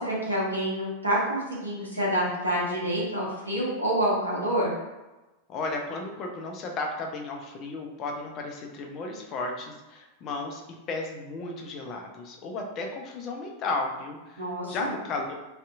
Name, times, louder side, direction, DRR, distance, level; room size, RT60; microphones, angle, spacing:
voice 1, 0.0-4.8 14.4-14.9, right 1 dB, 85° right, -6 dB, 0.8 m, -27 dB
voice 2, 5.5-10.6 10.9-15.3, left 3 dB, 35° left, 1 dB, 0.4 m, -34 dB
2.7 x 2.5 x 2.3 m, 1.1 s
figure-of-eight pair, 90°, 0 cm